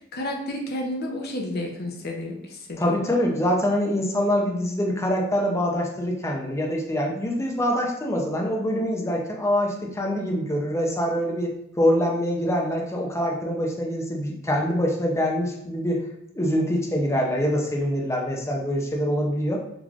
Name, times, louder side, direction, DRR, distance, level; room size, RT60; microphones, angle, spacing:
voice 1, 0.1-2.9, left 1 dB, 55° left, 1 dB, 0.7 m, -31 dB
voice 2, 2.8-11.5 11.8-16.0 16.3-19.6, equal, 15° left, 0 dB, 0.6 m, -24 dB
3.7 x 3.1 x 2.4 m, 0.78 s
head